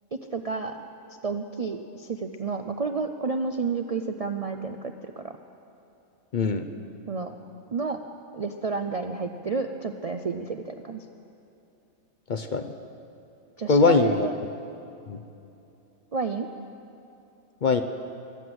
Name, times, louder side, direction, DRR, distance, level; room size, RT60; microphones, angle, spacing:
voice 1, 0.1-0.8 1.2-4.8 5.2-5.3 7.1-7.3 7.7-8.0 8.3-11.1 13.6-14.3 16.1-16.5, right 4 dB, 60° right, 6 dB, 0.3 m, -30 dB
voice 2, 6.3-6.7 12.3-12.7 13.7-14.3 15.1-15.2 17.6-17.8, left 4 dB, 50° left, 8 dB, 0.6 m, -21 dB
23.0 x 8.0 x 7.7 m, 2.8 s
omnidirectional pair, 1.4 m